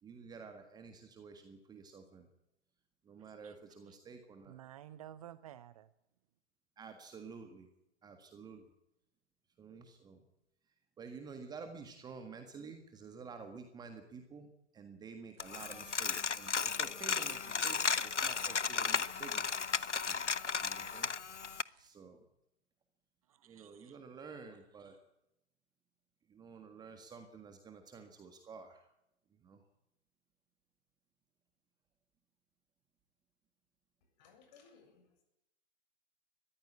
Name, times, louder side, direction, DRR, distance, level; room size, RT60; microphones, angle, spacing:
voice 1, 0.0-2.3 3.0-4.5 6.8-7.7 8.0-8.7 9.6-10.2 11.0-14.5 14.7-21.1 21.8-22.2 23.4-25.0 26.3-28.9 29.4-29.6, right 5 dB, 10° right, 1.7 m, -51 dB
voice 2, 3.2-3.6 3.8-4.0 4.4-5.9 23.3-24.0, right 11 dB, 30° right, 0.7 m, -53 dB
sound 1, 15.3-21.9, right 6 dB, 55° right, 3.1 m, -65 dB
Coin (dropping), 15.4-21.6, left 5 dB, 85° left, 0.8 m, -35 dB
voice 3, 34.2-35.2, left 5 dB, 35° left, 7.5 m, -62 dB
21.0 x 14.5 x 8.7 m
figure-of-eight pair, 120°, 35 cm